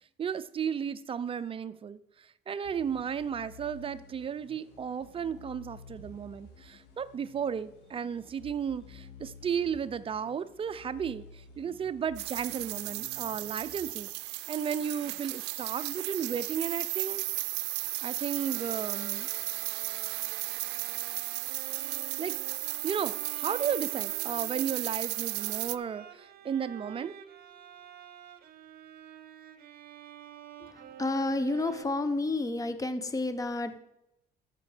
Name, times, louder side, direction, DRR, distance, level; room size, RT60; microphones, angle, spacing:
voice 1, 0.2-17.2 17.5-17.6 18.0-19.3 22.2-22.3 22.8-27.1, right 7 dB, 35° right, 13 dB, 0.5 m, -34 dB
sound 1, 2.6-14.5, left 4 dB, 85° left, 2.1 m, -53 dB
sound 2, 12.2-25.8, right 20 dB, 90° right, 0.4 m, -35 dB
Bowed string instrument, 18.3-31.8, right 10 dB, 65° right, 1.0 m, -49 dB
voice 2, 30.6-33.8, left 2 dB, 20° left, 11 dB, 0.9 m, -31 dB
13.5 x 6.0 x 5.0 m, 0.84 s
cardioid pair, 110°, 17 cm